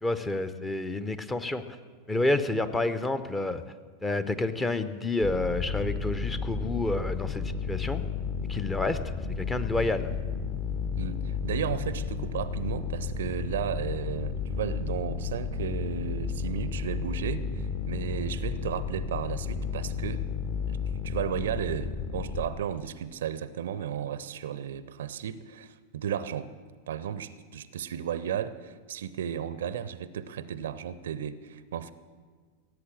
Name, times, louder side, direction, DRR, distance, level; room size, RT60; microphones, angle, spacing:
voice 1, 0.0-1.6 2.1-3.6 4.0-8.0 8.5-9.0 9.4-10.1, left 2 dB, 10° left, 12 dB, 0.8 m, -29 dB
sound 1, 5.2-22.5, left 5 dB, 35° left, 1.3 m, -32 dB
voice 2, 10.9-20.3 20.7-20.8 21.0-26.5 26.9-31.9, right 9 dB, 60° right, 16 dB, 0.6 m, -34 dB
16.5 x 8.2 x 7.6 m, 1.5 s
figure-of-eight pair, 90°, 0 cm